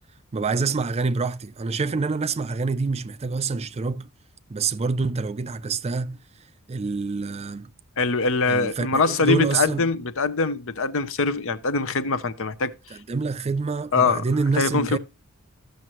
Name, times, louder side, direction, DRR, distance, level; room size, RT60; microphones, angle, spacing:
voice 1, 0.3-4.1 4.5-6.2 6.7-7.7 8.4-9.9 12.9-15.0, right 4 dB, 30° right, 0.4 m, -26 dB
voice 2, 8.0-12.7 13.9-14.3 14.6-15.0, left 4 dB, 65° left, 0.8 m, -23 dB
14.0 x 6.5 x 3.0 m
head